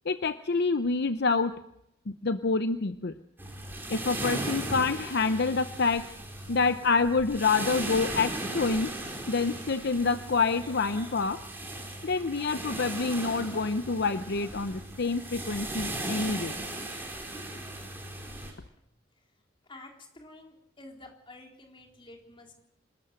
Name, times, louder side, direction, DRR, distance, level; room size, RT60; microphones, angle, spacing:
voice 1, 0.1-1.5 2.1-3.1 3.9-6.0 6.5-8.9 9.3-11.4 12.0-16.5, left 4 dB, 60° left, 10 dB, 0.7 m, -27 dB
sound 1, 3.4-18.5, right 1 dB, 10° right, 4.3 m, -37 dB
voice 2, 19.7-22.5, left 2 dB, 25° left, 1 dB, 3.9 m, -50 dB
26.0 x 13.5 x 7.8 m, 0.78 s
head